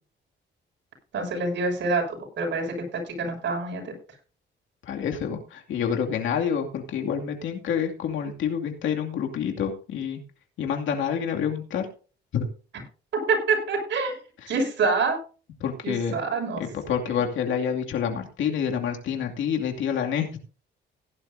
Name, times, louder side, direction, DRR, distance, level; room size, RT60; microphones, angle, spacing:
voice 1, 1.1-3.9 13.1-14.2 14.5-15.2 15.8-16.6 17.1-17.2, right 4 dB, 65° right, 1 dB, 6.8 m, -26 dB
voice 2, 4.8-10.2 10.6-11.9 12.3-12.5 14.4-14.5 15.6-16.2 16.6-20.4, left 7 dB, 75° left, 2 dB, 2.5 m, -28 dB
17.0 x 11.0 x 2.7 m, 0.36 s
cardioid pair, 90°, 20 cm